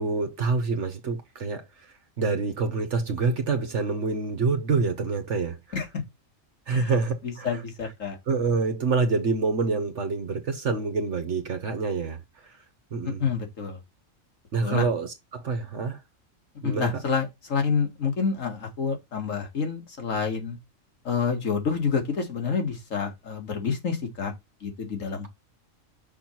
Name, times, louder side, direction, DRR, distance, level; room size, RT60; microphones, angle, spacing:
voice 1, 0.0-1.9 2.2-5.6 6.7-7.6 8.3-12.2 12.4-12.5 12.9-13.2 14.5-16.0 16.6-17.0, right 4 dB, 60° right, 1.4 m, -27 dB
voice 2, 7.4-8.2 13.2-13.8 14.6-14.9 16.6-20.6 21.1-24.3 24.6-25.3, left 5 dB, 70° left, 2.3 m, -28 dB
6.1 x 4.5 x 5.7 m
omnidirectional pair, 1.4 m